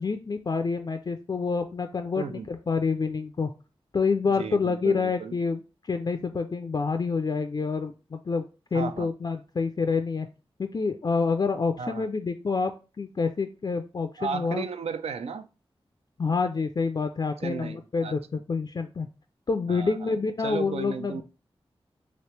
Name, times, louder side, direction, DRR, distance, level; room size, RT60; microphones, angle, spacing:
voice 1, 0.0-3.5 3.9-5.6 5.9-8.4 8.7-10.3 10.6-14.6 16.2-19.1 19.5-21.2, left 4 dB, 40° left, 0.3 m, -27 dB
voice 2, 2.1-2.5 4.4-5.3 8.7-9.1 11.8-12.1 14.2-15.5 17.4-18.1 19.7-20.2 20.4-21.2, right 5 dB, 85° right, 0.4 m, -34 dB
3.0 x 2.8 x 3.2 m
cardioid pair, 50°, 10 cm